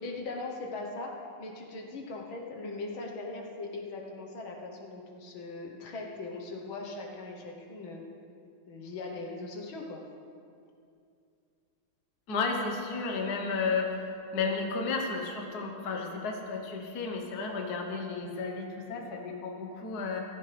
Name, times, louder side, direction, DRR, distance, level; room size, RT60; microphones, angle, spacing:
voice 1, 0.0-8.0 8.7-10.0, left 3 dB, 70° left, 1 dB, 1.9 m, -40 dB
voice 2, 12.3-20.2, left 4 dB, 50° left, 2 dB, 1.6 m, -33 dB
15.5 x 14.0 x 3.4 m, 2.4 s
omnidirectional pair, 2.3 m